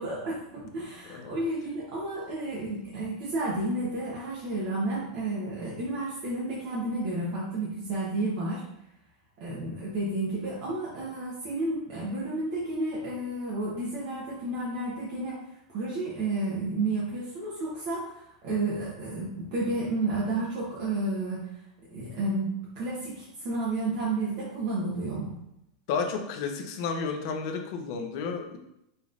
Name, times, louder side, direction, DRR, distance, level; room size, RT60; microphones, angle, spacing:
voice 1, 0.0-8.6 9.4-15.4 15.7-21.5 21.9-25.3, right 2 dB, 40° right, -6 dB, 1.0 m, -31 dB
voice 2, 1.0-1.3 25.9-28.6, left 5 dB, 50° left, 4 dB, 0.7 m, -32 dB
5.4 x 3.1 x 2.5 m, 0.81 s
supercardioid pair, 170°, 3 cm